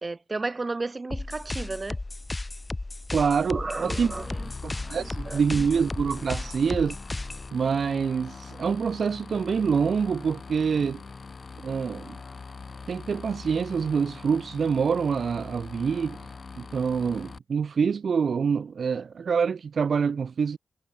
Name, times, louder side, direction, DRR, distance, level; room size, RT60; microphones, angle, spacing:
voice 1, 0.0-2.0 3.5-4.4 5.0-5.4, right 3 dB, 35° right, 3.3 m, -33 dB
sound 1, 1.1-7.5, left 2 dB, 25° left, 1.3 m, -34 dB
voice 2, 3.1-4.1 4.6-7.0 7.5-11.0 11.6-12.2 12.9-20.6, right 6 dB, 65° right, 0.4 m, -26 dB
sound 2, 3.8-17.4, left 4 dB, 45° left, 3.9 m, -43 dB
cardioid pair, 55°, 0 cm